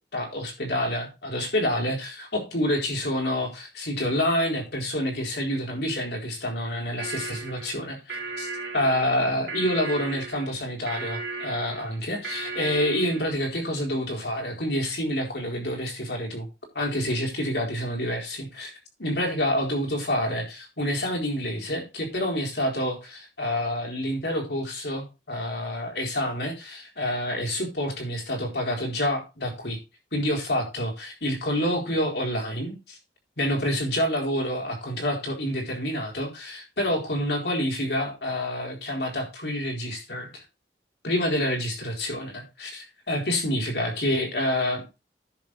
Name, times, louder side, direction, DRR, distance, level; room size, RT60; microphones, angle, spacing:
voice 1, 0.1-16.5 16.7-18.7 19.0-29.8 30.1-33.0 33.4-40.4 41.0-44.9, equal, 75° left, 0 dB, 4.3 m, -28 dB
sound 1, 7.0-13.4, right 3 dB, 70° right, 2.9 m, -36 dB
10.5 x 7.0 x 4.2 m, 0.28 s
head